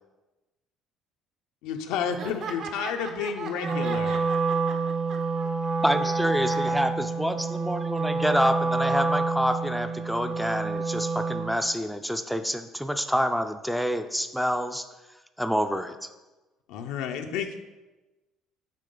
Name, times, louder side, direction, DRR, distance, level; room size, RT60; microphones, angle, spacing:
voice 1, 1.6-4.2 16.7-17.6, left 7 dB, 85° left, 4 dB, 0.5 m, -31 dB
voice 2, 2.2-5.5 5.9-6.8, right 4 dB, 65° right, 3 dB, 1.2 m, -39 dB
Wind instrument woodwind instrument, 3.6-11.6, right 4 dB, 35° right, 0.7 m, -28 dB
voice 3, 5.8-14.9 15.4-16.1, equal, ahead, 8 dB, 0.4 m, -27 dB
7.5 x 4.7 x 3.8 m, 1.1 s
cardioid pair, 110°, 0 cm